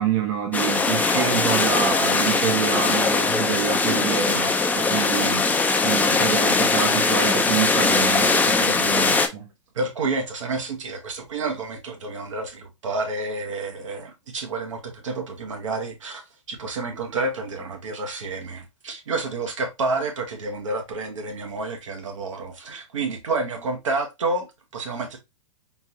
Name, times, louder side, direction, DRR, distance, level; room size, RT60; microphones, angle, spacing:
voice 1, 0.0-9.5, right 8 dB, 55° right, 0.9 m, -27 dB
sound 1, 0.5-9.3, left 4 dB, 10° left, 0.5 m, -21 dB
voice 2, 9.7-25.2, right 3 dB, 75° right, 1.2 m, -29 dB
3.8 x 2.5 x 2.8 m
hypercardioid pair, 110°, 16 cm